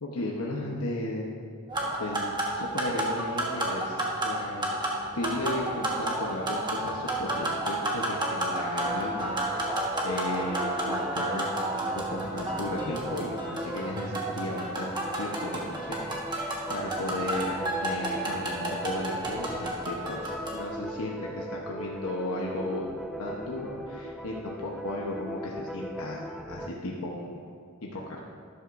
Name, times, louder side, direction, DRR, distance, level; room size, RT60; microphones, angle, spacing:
voice 1, 0.0-1.2 2.0-2.3 2.5-4.8 5.1-9.4 10.0-22.9 23.2-27.4 27.8-28.2, left 1 dB, 80° left, -2 dB, 1.0 m, -35 dB
sound 1, 1.7-20.6, right 1 dB, 20° right, 1.4 m, -31 dB
sound 2, 8.8-26.7, equal, ahead, 0.3 m, -39 dB
12.5 x 11.0 x 2.6 m, 2.3 s
head